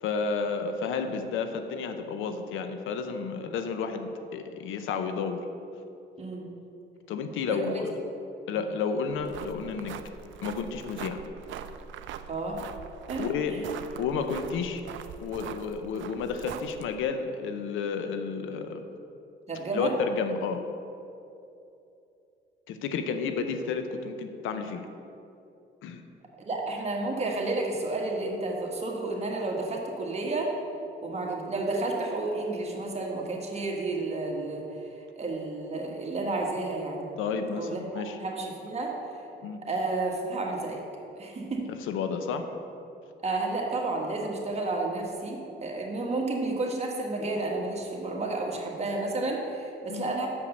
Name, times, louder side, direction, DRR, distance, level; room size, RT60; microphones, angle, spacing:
voice 1, 0.0-5.4 7.1-7.9 8.5-10.0 10.4-11.2 13.2-13.7 14.0-14.8 15.2-18.8 19.7-20.6 22.7-24.8 25.8-26.1 37.2-38.2 39.4-39.6 41.9-42.5 49.9-50.1, left 5 dB, 90° left, 7 dB, 0.7 m, -31 dB
voice 2, 6.2-6.5 7.5-7.6 8.5-8.6 12.3-12.6 13.1-13.2 13.5-13.6 19.5-19.9 26.4-30.6 31.0-34.7 35.2-37.1 37.6-39.0 39.7-40.8 41.2-41.7 43.2-50.3, right 2 dB, 35° right, -1 dB, 1.6 m, -31 dB
sound 1, 9.1-17.0, right 8 dB, 75° right, 0.4 m, -42 dB
6.6 x 5.2 x 6.9 m, 2.7 s
cardioid pair, 90°, 20 cm